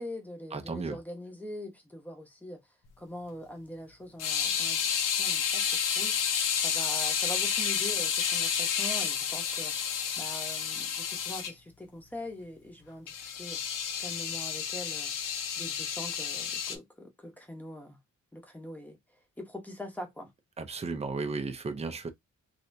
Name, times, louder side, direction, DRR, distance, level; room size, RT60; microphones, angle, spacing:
voice 1, 0.0-2.6 3.0-6.4 6.6-13.6 14.0-15.1 15.6-18.0 18.3-19.0 19.4-20.3, left 1 dB, 5° left, 0.9 m, -43 dB
voice 2, 0.5-1.0 20.6-22.1, right 4 dB, 20° right, 0.5 m, -34 dB
sound 1, 4.2-11.5 13.1-16.8, left 7 dB, 90° left, 0.6 m, -30 dB
3.3 x 2.8 x 2.6 m
wide cardioid pair, 155°, 31 cm